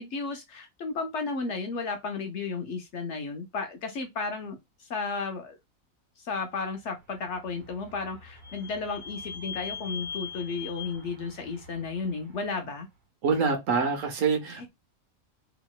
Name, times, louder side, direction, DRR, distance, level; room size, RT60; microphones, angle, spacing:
voice 1, 0.0-5.6 6.2-12.9 14.5-14.7, left 4 dB, 60° left, 0.8 m, -33 dB
Vehicle / Squeak, 7.0-12.6, left 5 dB, 85° right, 1.4 m, -42 dB
voice 2, 13.2-14.7, right 5 dB, 65° right, 1.1 m, -26 dB
3.0 x 2.8 x 2.3 m
omnidirectional pair, 1.5 m